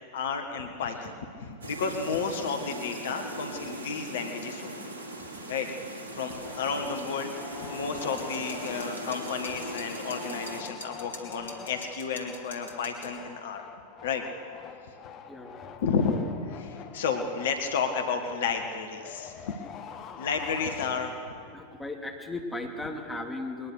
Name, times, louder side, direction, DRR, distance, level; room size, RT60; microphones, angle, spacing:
voice 1, 0.1-1.1 1.4-4.9 5.5-5.7 6.1-7.3 7.6-13.6 14.0-14.2 15.8-19.6 20.2-21.1, left 5 dB, 60° left, 5 dB, 1.6 m, -32 dB
sound 1, 1.6-10.6, right 1 dB, 65° right, 3.2 m, -39 dB
sound 2, 6.4-21.4, left 7 dB, 35° left, 1.6 m, -45 dB
sound 3, 8.0-13.2, left 2 dB, 75° left, 2.8 m, -45 dB
voice 2, 15.3-15.8 21.5-23.7, left 2 dB, 5° left, 1 dB, 2.5 m, -37 dB
21.5 x 21.0 x 6.5 m, 2.4 s
figure-of-eight pair, 90°, 0 cm